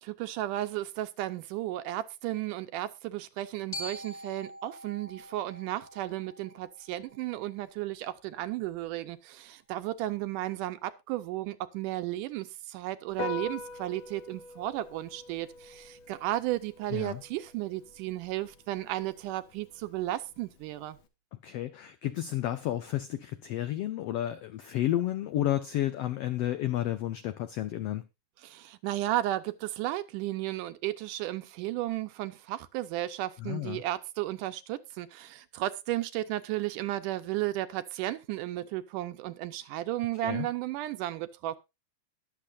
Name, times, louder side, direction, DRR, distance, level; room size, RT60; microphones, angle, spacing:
voice 1, 0.0-21.0 28.4-41.6, right 15 dB, 85° right, 2.3 m, -34 dB
Glockenspiel, 3.7-7.8, equal, 15° left, 1.4 m, -45 dB
Piano, 13.1-21.1, left 4 dB, 60° left, 1.4 m, -44 dB
voice 2, 16.9-17.2 21.4-28.0 33.4-33.8 40.2-40.5, left 13 dB, 85° left, 1.3 m, -31 dB
20.5 x 7.1 x 2.5 m
omnidirectional pair, 3.7 m